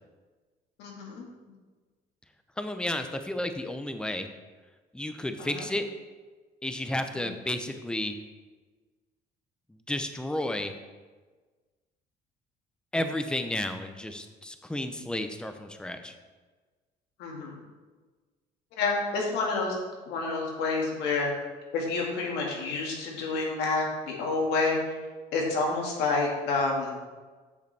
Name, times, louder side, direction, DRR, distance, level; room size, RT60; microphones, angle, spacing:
voice 1, 0.8-1.3 5.4-5.7 7.1-7.3 17.2-17.5 18.8-19.8 20.1-21.3 21.7-24.8 25.3-27.0, left 3 dB, 90° left, -1 dB, 1.9 m, -29 dB
voice 2, 2.6-4.3 4.9-5.8 6.6-8.1 9.9-10.7 12.9-16.1, left 1 dB, 5° left, 7 dB, 0.6 m, -32 dB
8.2 x 6.6 x 3.4 m, 1.3 s
cardioid pair, 110°, 17 cm